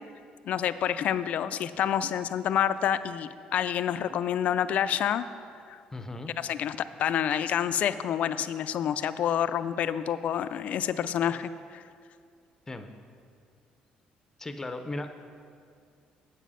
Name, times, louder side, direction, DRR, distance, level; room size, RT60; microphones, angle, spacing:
voice 1, 0.4-5.3 5.7-5.8 6.4-11.8, left 9 dB, 60° left, 13 dB, 0.3 m, -28 dB
voice 2, 5.9-6.3 12.7-12.9 14.4-15.1, left 2 dB, 15° left, 7 dB, 0.6 m, -36 dB
8.2 x 7.3 x 5.6 m, 2.3 s
cardioid pair, 115°, 3 cm